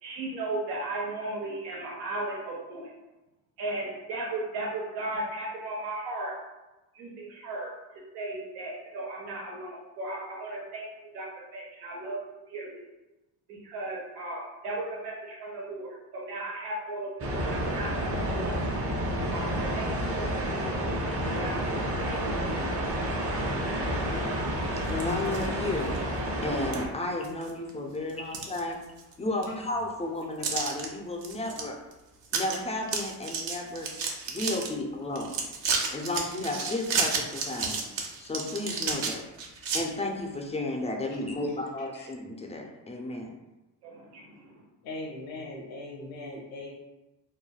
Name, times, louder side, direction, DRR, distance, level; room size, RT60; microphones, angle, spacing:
voice 1, 0.0-2.9 3.6-6.3 6.9-10.9 11.1-12.8 13.5-17.9 18.3-18.7 19.3-19.9 20.2-20.8 21.3-22.4 43.8-44.6, right 2 dB, 85° right, -3 dB, 0.9 m, -36 dB
sound 1, 17.2-26.9, equal, 30° right, 0.7 m, -30 dB
voice 2, 24.8-25.9 26.4-28.8 29.2-31.8 32.3-33.9 34.3-35.3 35.9-39.3 39.7-43.3, left 2 dB, 15° left, 1 dB, 0.3 m, -33 dB
sound 2, 24.9-25.5 25.9-26.0 26.7-26.8 27.2-27.7 28.1-29.1 29.4-29.5 30.4-30.9 31.2-31.6 31.9-32.0 32.3-32.6 32.8-34.7 35.2-39.8, right 5 dB, 60° right, 0.7 m, -31 dB
voice 3, 44.8-46.7, left 2 dB, 65° left, -2 dB, 0.7 m, -40 dB
3.2 x 2.2 x 2.2 m, 1.0 s
supercardioid pair, 65°, 50 cm